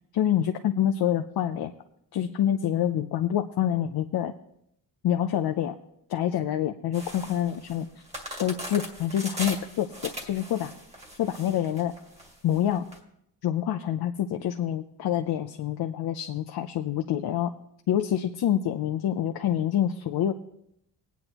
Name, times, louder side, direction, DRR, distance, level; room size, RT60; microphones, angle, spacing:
voice 1, 0.1-1.7 2.1-4.3 5.0-5.8 6.1-7.9 8.4-10.7 11.2-11.9 12.4-12.9 13.4-17.5 17.9-20.3, left 10 dB, 60° left, 6 dB, 0.7 m, -26 dB
sound 1, 6.9-13.0, equal, 15° right, 1.9 m, -39 dB
21.0 x 9.4 x 3.0 m, 0.76 s
wide cardioid pair, 150°, 42 cm